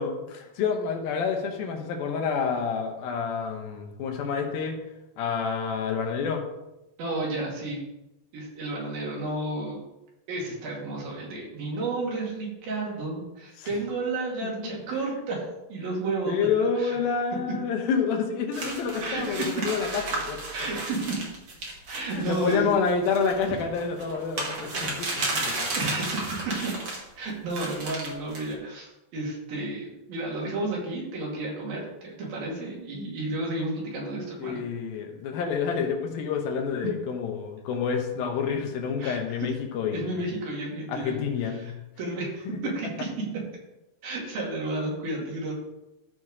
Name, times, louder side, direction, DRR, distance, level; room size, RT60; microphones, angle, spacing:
voice 1, 0.0-4.8 5.2-6.4 13.6-13.7 14.4-14.7 16.3-20.4 22.1-25.7 34.4-40.2 40.9-41.7 42.5-42.6, left 6 dB, 75° left, 3 dB, 2.9 m, -28 dB
voice 2, 7.0-7.8 8.3-9.8 10.3-16.4 16.8-17.0 19.0-19.6 20.5-21.2 21.9-22.8 25.8-26.5 27.2-34.6 39.0-39.5 39.9-41.2 41.5-43.3 44.0-45.5, right 2 dB, 75° right, -3 dB, 4.2 m, -32 dB
sound 1, 18.5-27.0 27.5-28.5, right 2 dB, 40° right, 1.7 m, -33 dB
13.5 x 4.6 x 4.9 m, 0.94 s
omnidirectional pair, 4.3 m